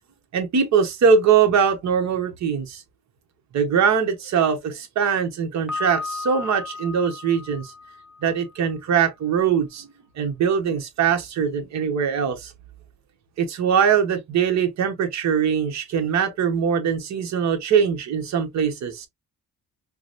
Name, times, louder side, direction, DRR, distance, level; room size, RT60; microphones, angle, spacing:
voice 1, 0.3-2.8 3.5-7.7 8.2-9.9 10.2-12.5 13.4-19.1, right 7 dB, 50° right, 1.0 m, -22 dB
Piano, 5.7-8.6, left 4 dB, ahead, 0.8 m, -34 dB
4.8 x 2.1 x 2.5 m
cardioid pair, 120°, 35 cm